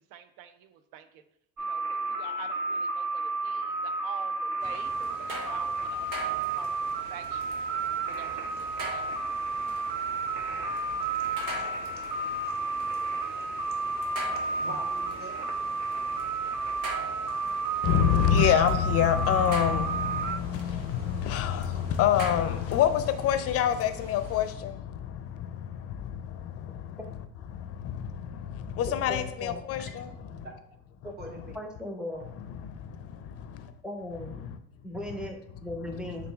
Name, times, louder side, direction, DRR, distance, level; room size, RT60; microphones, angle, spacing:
voice 1, 0.1-1.2 1.7-4.9 5.5-7.6 8.1-9.0, right 9 dB, 65° right, 0.6 m, -47 dB
sound 1, 1.6-20.4, right 3 dB, 50° right, 0.9 m, -32 dB
sound 2, 4.6-24.5, right 2 dB, 85° right, 0.9 m, -43 dB
voice 2, 11.1-11.7 14.6-15.5 31.2-31.5 32.1-32.3, right 2 dB, 25° right, 1.1 m, -43 dB
voice 3, 17.8-27.0 27.5-30.5 32.4-33.7 34.2-34.6, left 9 dB, 35° left, 0.5 m, -27 dB
voice 4, 29.1-29.9 31.0-31.1 31.5-32.2 33.8-34.4 34.8-36.3, left 1 dB, ahead, 0.7 m, -38 dB
6.4 x 2.4 x 2.3 m
hypercardioid pair, 70°, 41 cm